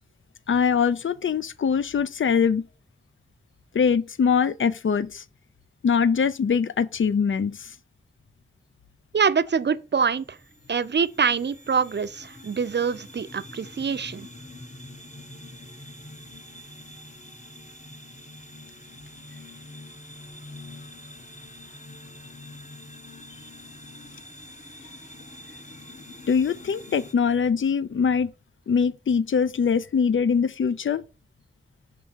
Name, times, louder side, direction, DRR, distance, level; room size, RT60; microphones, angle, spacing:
voice 1, 0.5-2.6 3.7-5.2 5.8-7.7 26.3-28.3 28.7-31.0, left 6 dB, 80° left, 0.4 m, -23 dB
voice 2, 9.1-10.4 10.7-14.3, right 6 dB, 60° right, 0.4 m, -25 dB
sound 1, 9.2-27.1, left 1 dB, 40° left, 1.0 m, -45 dB
5.9 x 3.6 x 4.4 m
wide cardioid pair, 60°, 20 cm